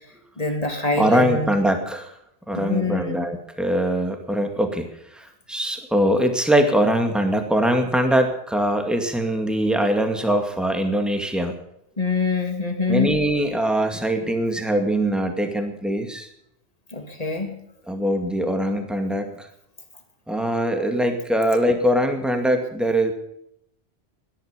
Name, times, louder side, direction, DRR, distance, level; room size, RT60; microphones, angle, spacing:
voice 1, 0.4-1.5 2.5-3.2 12.0-13.2 16.9-17.6, left 3 dB, 35° left, 4 dB, 2.7 m, -24 dB
voice 2, 1.0-2.1 2.5-4.9 5.2-11.6 12.9-16.3 17.9-19.5 20.3-23.1, right 1 dB, ahead, 5 dB, 2.2 m, -22 dB
18.5 x 12.0 x 5.2 m, 0.76 s
omnidirectional pair, 1.1 m